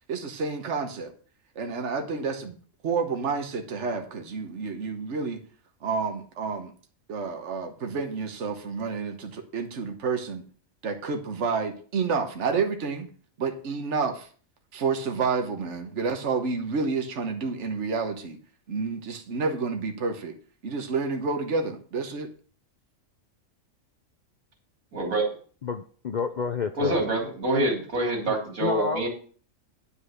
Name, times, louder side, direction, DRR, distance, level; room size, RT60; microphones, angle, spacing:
voice 1, 0.1-1.1 1.5-2.5 2.8-5.4 5.8-6.7 7.1-10.4 10.8-13.1 13.4-14.3 14.7-18.4 18.7-20.3 20.6-22.3, right 4 dB, 60° right, 4 dB, 1.4 m, -29 dB
voice 2, 24.9-25.4 26.8-29.1, right 2 dB, 85° right, 1 dB, 3.3 m, -26 dB
voice 3, 25.6-27.0 28.3-29.1, left 5 dB, 50° left, 7 dB, 0.5 m, -30 dB
9.9 x 5.3 x 6.4 m, 0.43 s
omnidirectional pair, 1.4 m